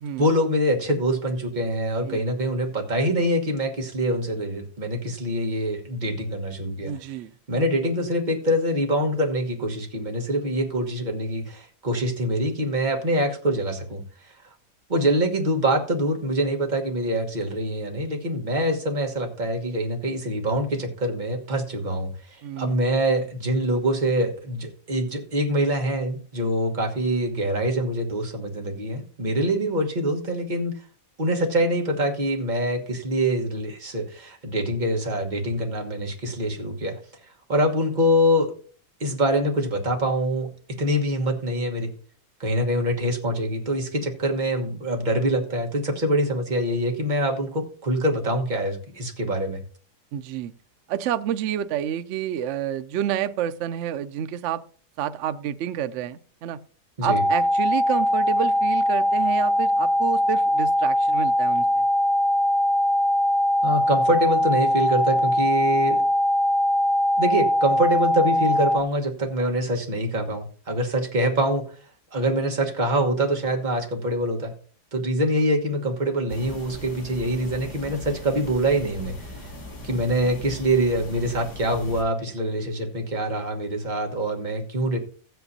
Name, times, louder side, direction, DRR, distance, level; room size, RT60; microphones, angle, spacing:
voice 1, 0.2-7.0 7.5-14.0 14.9-30.8 31.2-37.0 37.5-38.5 39.0-41.9 42.4-49.6 57.0-57.2 63.6-66.0 67.2-71.6 72.1-74.5 74.9-79.5 79.8-85.0, right 1 dB, 30° right, 1 dB, 1.4 m, -25 dB
voice 2, 6.8-7.3 22.4-22.8 50.1-50.5 50.9-54.6 55.0-56.6 57.0-61.6, right 10 dB, 75° right, 11 dB, 0.6 m, -29 dB
sound 1, 57.1-68.8, left 1 dB, 35° left, 0.4 m, -21 dB
sound 2, 76.3-82.0, left 1 dB, 75° left, 2.9 m, -39 dB
15.5 x 7.9 x 2.7 m, 0.43 s
omnidirectional pair, 1.8 m